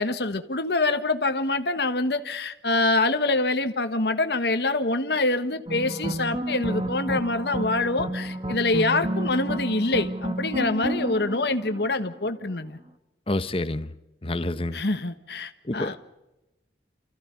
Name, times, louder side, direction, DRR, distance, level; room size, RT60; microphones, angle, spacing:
voice 1, 0.0-12.8 14.7-16.0, left 2 dB, 65° left, 1.4 m, -25 dB
sound 1, 5.7-12.3, right 1 dB, 30° right, 1.7 m, -30 dB
voice 2, 13.3-13.9 14.2-14.8 15.6-16.0, left 1 dB, 30° left, 1.0 m, -28 dB
29.0 x 15.0 x 9.5 m
head